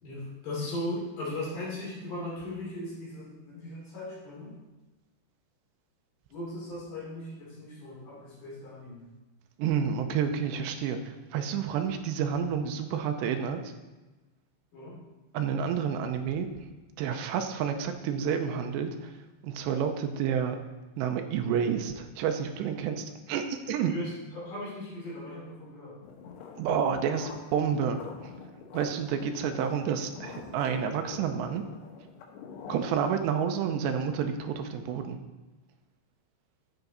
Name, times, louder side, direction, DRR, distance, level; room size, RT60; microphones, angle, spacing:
voice 1, 0.0-4.5 6.3-9.0 14.7-15.0 23.9-26.0, left 1 dB, 50° left, -5 dB, 4.0 m, -38 dB
voice 2, 9.6-13.6 15.3-16.5 17.0-19.1 19.4-20.6 21.0-23.9 26.6-28.3 28.7-31.6 32.7-35.2, right 7 dB, 85° right, 6 dB, 2.9 m, -29 dB
sound 1, 26.0-33.1, left 5 dB, 75° left, 3.3 m, -46 dB
10.5 x 8.0 x 4.1 m, 1.2 s
omnidirectional pair, 5.1 m